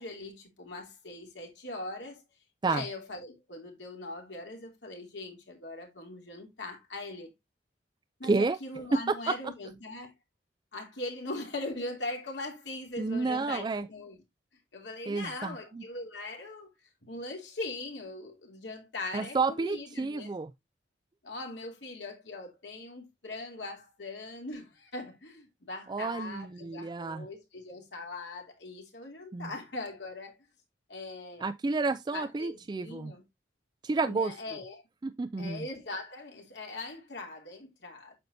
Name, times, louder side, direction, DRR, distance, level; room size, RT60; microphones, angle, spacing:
voice 1, 0.0-2.2 2.7-7.3 8.2-10.1 10.7-14.2 14.7-16.7 17.0-20.3 21.2-30.4 30.9-31.4 32.1-33.2 34.0-34.8 35.4-38.1, left 2 dB, 75° left, 2.9 m, -41 dB
voice 2, 8.2-8.6 8.9-9.0 9.3-9.4 13.0-13.9 15.1-15.8 19.1-20.5 25.9-27.3 29.3-29.5 31.4-33.1 33.8-34.3 35.0-35.7, right 3 dB, 25° right, 0.3 m, -30 dB
8.8 x 6.6 x 2.7 m
head